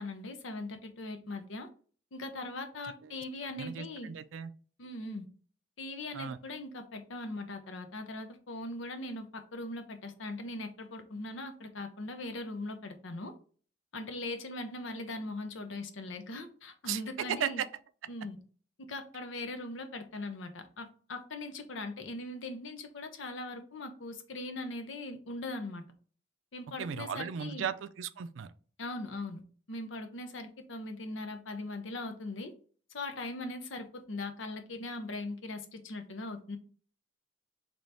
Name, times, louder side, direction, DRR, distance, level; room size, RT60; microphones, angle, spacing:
voice 1, 0.0-1.7 2.1-4.1 4.8-5.3 5.8-13.3 13.9-17.6 18.1-18.4 18.9-25.8 26.5-27.7 28.8-29.4 29.7-32.5 32.9-36.6, left 2 dB, 85° left, 0.7 m, -40 dB
voice 2, 3.6-4.5 6.1-6.4 16.9-17.0 17.3-17.7 26.8-28.5, right 7 dB, 85° right, 0.4 m, -36 dB
3.3 x 3.0 x 4.0 m
head